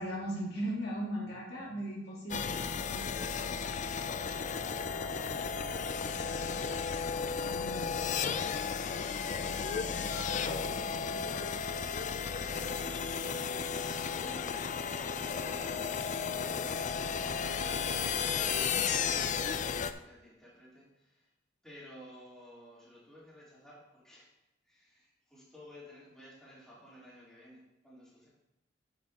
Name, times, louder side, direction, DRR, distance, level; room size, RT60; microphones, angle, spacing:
voice 1, 0.0-3.0 7.4-8.0, right 1 dB, 60° left, -4 dB, 2.2 m, -38 dB
sound 1, 2.3-19.9, left 6 dB, 40° left, 0.4 m, -34 dB
voice 2, 3.7-6.5 14.1-21.3 21.6-24.3 24.6-28.3, equal, 5° left, -9 dB, 3.4 m, -55 dB
9.4 x 8.1 x 2.9 m, 0.91 s
head